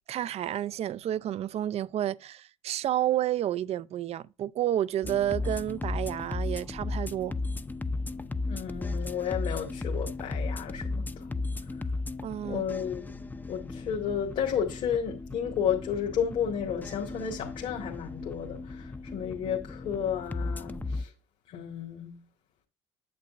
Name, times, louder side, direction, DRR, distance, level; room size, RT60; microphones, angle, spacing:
voice 1, 0.1-7.3 12.2-12.6, right 12 dB, 50° right, 0.4 m, -30 dB
sound 1, 5.0-21.0, left 3 dB, 10° left, 0.6 m, -35 dB
voice 2, 8.5-11.3 12.4-13.2 13.5-21.1 21.5-22.2, left 8 dB, 60° left, 1.8 m, -32 dB
8.6 x 7.8 x 2.5 m
hypercardioid pair, 60°, 14 cm